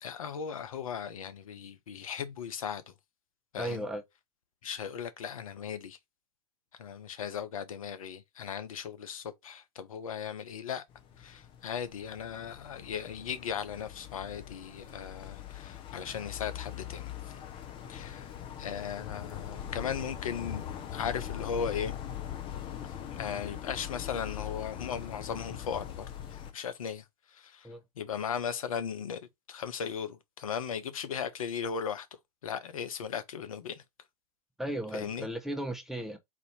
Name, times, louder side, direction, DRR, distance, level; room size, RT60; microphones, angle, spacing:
voice 1, 0.0-2.9 3.5-3.8 4.6-6.0 6.7-10.8 11.2-17.4 17.9-18.3 18.6-20.7 20.9-22.0 22.8-27.7 28.0-29.2 29.5-32.1 32.4-33.8 34.9-35.3, left 7 dB, 60° left, 0.8 m, -37 dB
voice 2, 3.6-4.0 27.6-27.8 34.6-36.2, right 1 dB, ahead, 0.8 m, -35 dB
sound 1, 10.9-26.5, left 10 dB, 25° left, 0.8 m, -41 dB
4.2 x 2.7 x 4.2 m
figure-of-eight pair, 100°, 20 cm